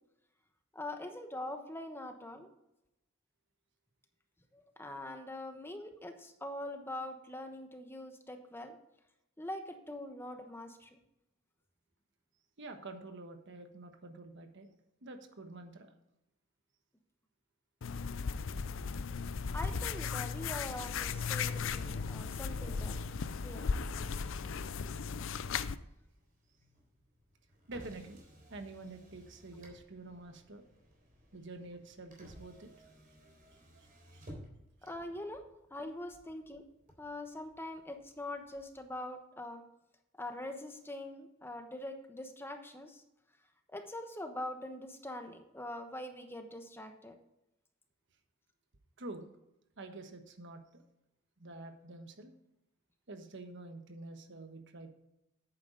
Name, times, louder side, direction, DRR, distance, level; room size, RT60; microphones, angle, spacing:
voice 1, 0.7-2.5 4.5-8.8 9.4-11.0 19.5-23.0 23.4-23.7 34.8-35.4 35.7-36.6 37.0-39.6 40.2-43.0 43.7-47.2, left 1 dB, 10° left, 6 dB, 1.0 m, -43 dB
voice 2, 12.6-14.7 15.0-15.9 27.7-28.2 28.5-30.6 31.3-32.7 34.1-34.2 49.0-49.3 49.8-50.8 51.4-52.3 53.1-54.9, right 2 dB, 60° right, 6 dB, 1.3 m, -47 dB
sound 1, 17.8-25.8, left 5 dB, 65° left, 0.5 m, -36 dB
Motor vehicle (road), 21.8-38.9, equal, 45° right, 3.8 m, -58 dB
10.5 x 9.0 x 3.9 m, 0.88 s
head